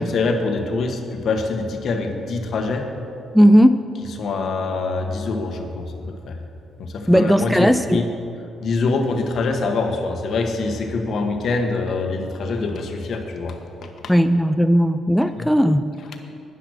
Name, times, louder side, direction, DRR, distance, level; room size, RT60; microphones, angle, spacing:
voice 1, 0.0-2.9 4.2-6.4 6.8-8.1 8.6-14.1 15.4-15.5, left 3 dB, 60° left, 4 dB, 1.5 m, -24 dB
voice 2, 3.3-3.8 7.1-8.0 14.1-15.9, equal, ahead, 10 dB, 0.4 m, -16 dB
10.5 x 10.0 x 6.5 m, 2.6 s
cardioid pair, 90°, 0 cm